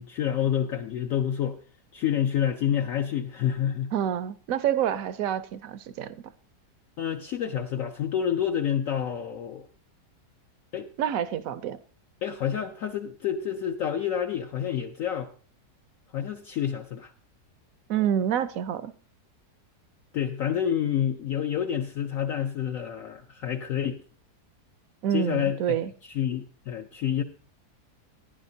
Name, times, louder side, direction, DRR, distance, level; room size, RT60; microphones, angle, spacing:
voice 1, 0.0-1.6 1.9-3.9 7.0-9.7 10.7-10.9 12.2-15.3 16.1-17.1 20.1-24.0 25.1-27.2, left 9 dB, 65° left, 0.9 m, -28 dB
voice 2, 3.9-6.2 11.0-11.8 17.9-18.9 25.0-25.9, right 9 dB, 65° right, 0.9 m, -27 dB
15.0 x 10.5 x 2.7 m
omnidirectional pair, 1.8 m